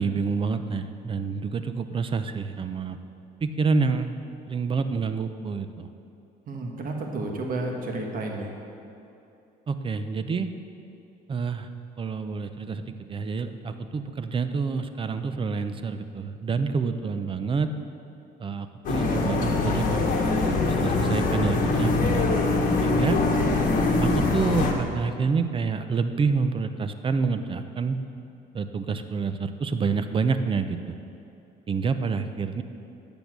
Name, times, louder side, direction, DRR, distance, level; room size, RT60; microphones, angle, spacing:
voice 1, 0.0-3.0 3.4-4.2 4.5-5.9 9.7-10.5 11.3-11.7 12.0-17.7 18.4-22.3 22.8-23.2 24.0-28.0 28.5-30.8 31.7-32.6, right 5 dB, 30° right, 9 dB, 0.6 m, -28 dB
voice 2, 6.5-8.5, right 2 dB, 55° right, 1 dB, 1.5 m, -31 dB
sound 1, 18.8-24.7, left 3 dB, 55° left, 1.4 m, -23 dB
10.0 x 7.0 x 6.0 m, 2.9 s
cardioid pair, 110°, 17 cm